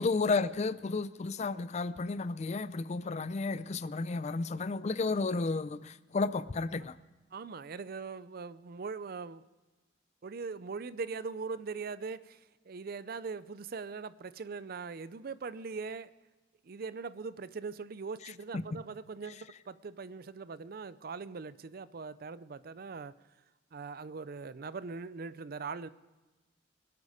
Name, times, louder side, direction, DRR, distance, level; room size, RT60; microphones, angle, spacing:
voice 1, 0.0-6.9, left 3 dB, 35° left, 16 dB, 0.4 m, -32 dB
voice 2, 7.3-9.4 10.2-12.4 12.7-16.1 16.6-19.4 19.7-23.1 23.7-25.9, right 4 dB, 50° right, 16 dB, 0.5 m, -41 dB
24.0 x 8.3 x 5.0 m, 1.2 s
head